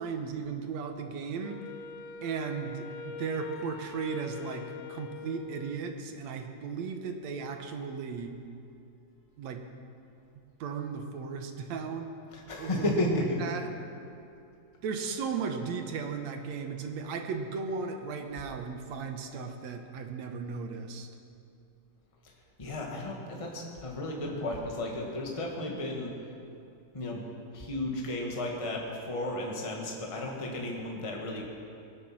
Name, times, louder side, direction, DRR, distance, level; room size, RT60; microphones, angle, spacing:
voice 1, 0.0-1.7 2.2-8.4 9.4-9.7 10.6-12.2 12.6-13.9 14.8-21.1, right 5 dB, 65° right, 5 dB, 2.0 m, -36 dB
Wind instrument woodwind instrument, 1.4-6.1, left 6 dB, 90° left, 1.5 m, -44 dB
voice 2, 12.3-13.4 22.2-22.3 22.6-26.3 26.9-27.2 27.5-31.6, left 1 dB, 15° left, -1 dB, 1.2 m, -33 dB
23.0 x 9.7 x 6.1 m, 2.6 s
omnidirectional pair, 3.9 m